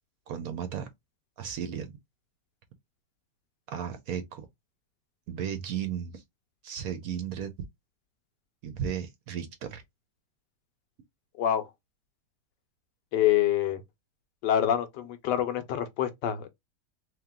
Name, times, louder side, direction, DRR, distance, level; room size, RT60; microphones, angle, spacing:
voice 1, 0.3-0.9 1.4-2.0 3.7-4.5 5.3-6.2 6.6-7.5 8.6-9.8, right 8 dB, 65° right, 1.0 m, -34 dB
voice 2, 11.4-11.7 13.1-13.8 14.4-16.5, left 11 dB, 85° left, 1.3 m, -26 dB
3.3 x 2.9 x 3.6 m
omnidirectional pair, 1.9 m